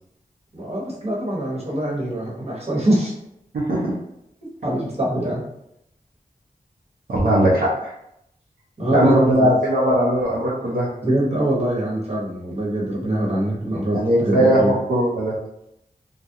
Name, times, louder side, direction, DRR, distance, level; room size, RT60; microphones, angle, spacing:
voice 1, 0.5-3.1 4.6-5.4 7.2-7.3 8.8-9.5 11.0-14.8, right 1 dB, 40° right, -5 dB, 1.1 m, -23 dB
voice 2, 3.5-3.9 7.1-7.9 8.9-10.9 13.9-14.6 14.9-15.3, equal, 75° right, -6 dB, 0.6 m, -19 dB
2.3 x 2.1 x 2.7 m, 0.78 s
cardioid pair, 50°, 16 cm